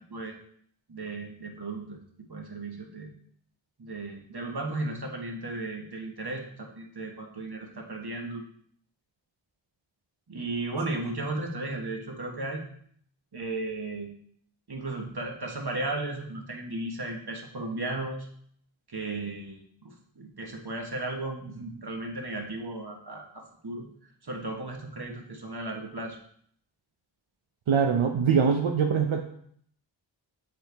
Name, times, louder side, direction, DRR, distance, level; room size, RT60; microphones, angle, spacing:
voice 1, 0.9-2.0 2.3-3.1 3.8-8.4 10.3-12.6 13.3-14.1 14.7-18.3 18.9-23.9 24.2-26.2, right 2 dB, 55° right, 1 dB, 1.5 m, -35 dB
voice 2, 27.7-29.2, right 6 dB, 80° right, 2 dB, 0.7 m, -23 dB
7.5 x 4.7 x 3.5 m, 0.63 s
wide cardioid pair, 45°, 47 cm